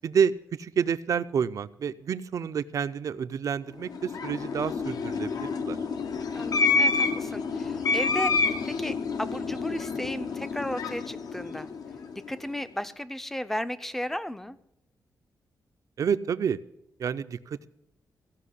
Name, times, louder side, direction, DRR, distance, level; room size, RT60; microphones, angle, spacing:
voice 1, 0.0-5.8 16.0-16.6 17.0-17.7, right 7 dB, 55° right, 13 dB, 0.5 m, -29 dB
sound 1, 3.8-12.3, left 4 dB, 65° left, 0.9 m, -28 dB
voice 2, 6.3-8.3 8.7-11.7 12.3-14.6, left 1 dB, 5° left, 13 dB, 0.5 m, -34 dB
15.5 x 5.7 x 9.8 m, 0.86 s
wide cardioid pair, 160°, 7 cm